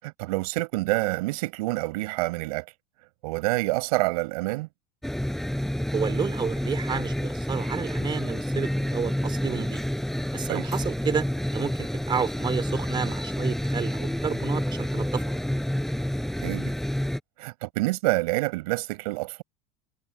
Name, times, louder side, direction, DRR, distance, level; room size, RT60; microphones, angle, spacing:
voice 1, 0.0-2.6 3.2-4.7 10.5-10.7 16.4-16.7 17.4-19.4, right 22 dB, 85° right, 7.7 m, -27 dB
sound 1, 5.0-17.2, equal, ahead, 6.8 m, -29 dB
voice 2, 5.9-9.8 10.3-11.3 11.5-15.4, right 6 dB, 25° right, 3.1 m, -31 dB
supercardioid pair, 135°, 19 cm